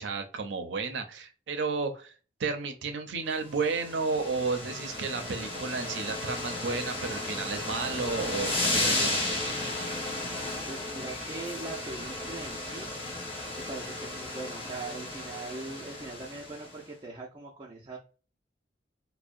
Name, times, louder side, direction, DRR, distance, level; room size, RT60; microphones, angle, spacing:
voice 1, 0.0-2.1 2.4-9.5, right 4 dB, 80° right, 6 dB, 0.5 m, -32 dB
sound 1, 3.5-16.7, left 2 dB, 30° left, 0.7 m, -34 dB
voice 2, 10.7-13.0 13.7-18.0, right 3 dB, 25° right, -2 dB, 0.4 m, -41 dB
2.7 x 2.0 x 2.4 m, 0.37 s
head